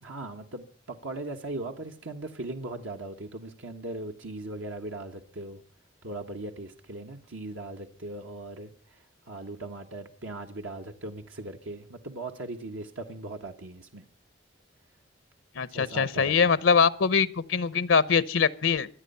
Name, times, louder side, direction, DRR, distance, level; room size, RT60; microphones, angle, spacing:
voice 1, 0.0-5.6 6.0-9.0 9.3-14.0 15.7-16.5, right 2 dB, 90° right, 1.4 m, -39 dB
voice 2, 15.6-18.9, left 5 dB, 85° left, 0.8 m, -23 dB
25.5 x 9.1 x 5.6 m
head